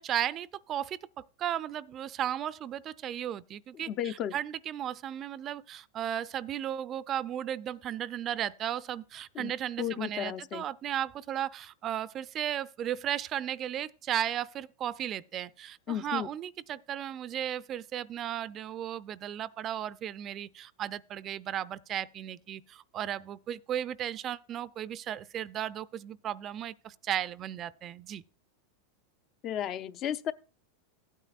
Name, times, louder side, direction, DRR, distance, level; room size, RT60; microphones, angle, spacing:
voice 1, 0.0-28.2, right 11 dB, 35° right, 0.4 m, -35 dB
voice 2, 3.9-4.3 9.3-9.5 9.8-10.6 15.9-16.3 29.4-30.3, left 10 dB, 40° left, 0.6 m, -33 dB
15.5 x 9.1 x 2.4 m
hypercardioid pair, 120°, 0 cm